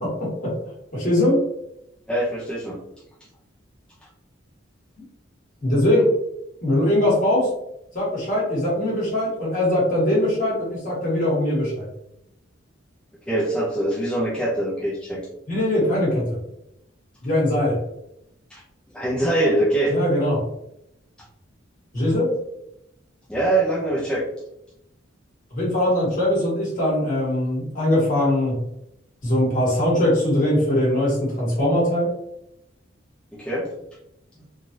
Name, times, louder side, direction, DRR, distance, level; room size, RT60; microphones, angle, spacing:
voice 1, 0.0-0.5 0.9-1.4 5.6-6.1 6.6-7.5 7.9-11.9 15.5-16.4 17.2-17.8 19.9-20.4 21.9-22.3 25.5-28.6 29.2-32.1, left 1 dB, 45° left, -6 dB, 1.5 m, -21 dB
voice 2, 2.1-2.8 13.3-15.2 18.5-18.6 18.9-19.9 23.3-24.3 33.3-33.7, right 1 dB, 5° left, -7 dB, 0.5 m, -23 dB
3.3 x 2.4 x 2.6 m, 0.82 s
head